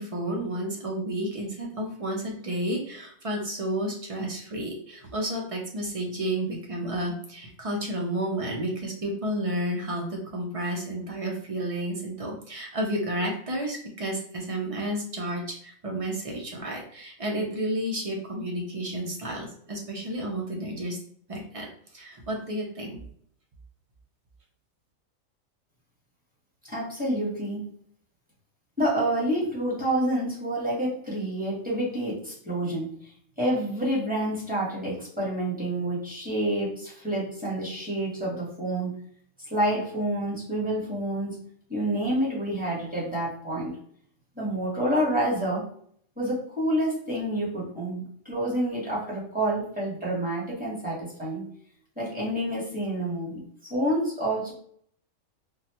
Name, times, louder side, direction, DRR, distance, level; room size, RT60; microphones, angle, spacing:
voice 1, 0.0-21.0 21.3-21.7 21.9-23.0, right 1 dB, 40° right, -1 dB, 0.5 m, -31 dB
voice 2, 26.7-27.7 28.8-32.9 33.4-38.9 39.5-41.4 41.7-43.8 44.4-45.6 46.2-51.5 52.0-54.5, right 1 dB, 5° right, -7 dB, 1.2 m, -28 dB
3.6 x 2.1 x 2.9 m, 0.63 s
omnidirectional pair, 1.4 m